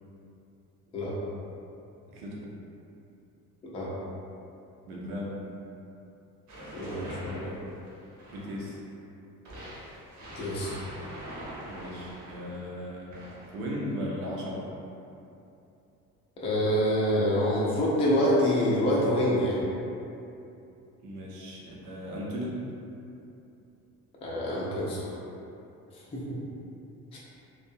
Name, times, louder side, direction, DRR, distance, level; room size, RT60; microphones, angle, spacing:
voice 1, 2.1-2.5 4.8-5.3 8.3-8.8 11.7-14.7 21.0-22.6, equal, 70° right, -4 dB, 0.6 m, -37 dB
sound 1, 6.5-8.7 9.5-12.6 13.1-13.7, equal, 40° right, 0.8 m, -43 dB
voice 2, 6.7-7.5 10.4-10.7 16.4-19.6 24.2-25.1 25.9-26.4 27.1-27.2, equal, 15° left, -7 dB, 0.4 m, -26 dB
2.5 x 2.0 x 2.5 m, 2.7 s
figure-of-eight pair, 55°, 47 cm